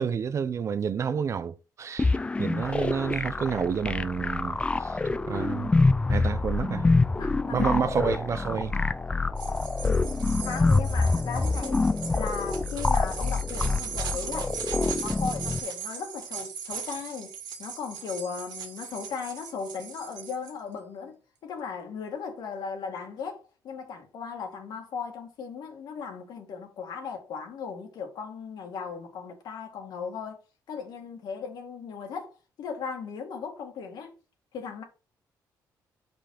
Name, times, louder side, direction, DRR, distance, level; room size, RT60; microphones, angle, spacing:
voice 1, 0.0-5.0 5.3-5.7 6.1-6.9 7.5-8.8, right 7 dB, 45° right, 0.5 m, -29 dB
sound 1, 2.0-15.6, left 3 dB, 15° left, 0.4 m, -26 dB
voice 2, 6.9-8.2 9.8-10.2 10.4-11.8 12.1-17.3 17.6-30.4 30.7-32.3 32.6-34.2 34.5-34.8, left 6 dB, 75° left, 2.1 m, -37 dB
sound 2, 9.4-20.5, right 7 dB, 75° right, 1.7 m, -39 dB
5.7 x 5.3 x 4.8 m
cardioid pair, 120°, 7 cm